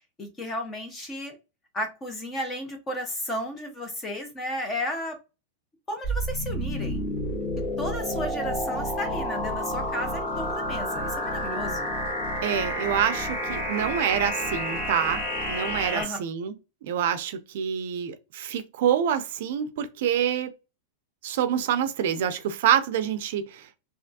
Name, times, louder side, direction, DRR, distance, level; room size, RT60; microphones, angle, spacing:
voice 1, 0.2-1.3 1.7-5.2 5.9-7.0 7.6-11.9 15.9-16.2, left 1 dB, 15° left, 0.8 m, -33 dB
sound 1, 6.0-16.0, equal, 40° left, 1.4 m, -30 dB
voice 2, 12.4-15.2 15.5-16.5 16.8-20.5 21.2-23.8, right 9 dB, 60° right, 0.5 m, -26 dB
3.3 x 2.4 x 2.7 m
supercardioid pair, 160°, 0 cm